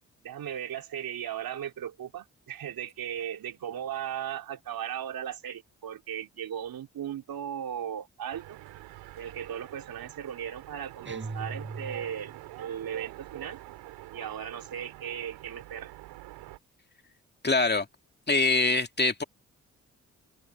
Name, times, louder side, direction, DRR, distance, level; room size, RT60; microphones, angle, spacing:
voice 1, 0.2-8.6 9.2-13.6 14.1-15.9, right 9 dB, 65° right, 3.4 m, -37 dB
sound 1, 8.3-16.6, right 17 dB, 80° right, 3.1 m, -46 dB
sound 2, 11.0-12.4, right 3 dB, 30° right, 6.8 m, -39 dB
voice 2, 17.4-17.9 18.3-19.2, left 3 dB, 25° left, 2.2 m, -24 dB
hypercardioid pair, 45°, 38 cm